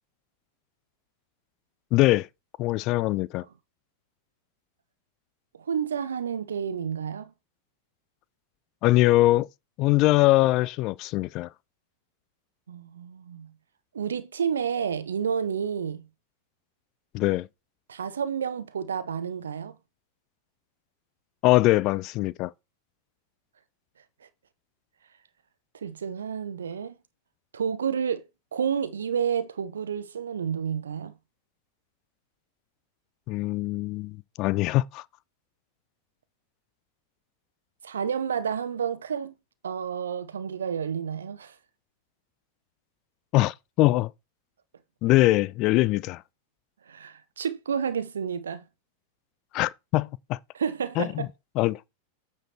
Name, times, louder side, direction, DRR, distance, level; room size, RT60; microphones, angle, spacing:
voice 1, 1.9-2.3 2.6-3.4 8.8-9.5 9.8-11.5 17.1-17.5 21.4-22.5 33.3-35.0 43.3-44.1 45.0-46.2 49.5-50.4 51.0-51.3 51.6-51.8, left 18 dB, 40° left, 0.4 m, -22 dB
voice 2, 5.6-7.3 12.7-13.5 13.9-16.1 17.9-19.7 25.8-26.9 27.5-28.2 28.5-31.1 37.8-39.3 39.6-41.5 46.9-48.6 50.5-51.3, right 7 dB, 70° right, 0.7 m, -30 dB
8.9 x 4.6 x 4.5 m
figure-of-eight pair, 90°, 0 cm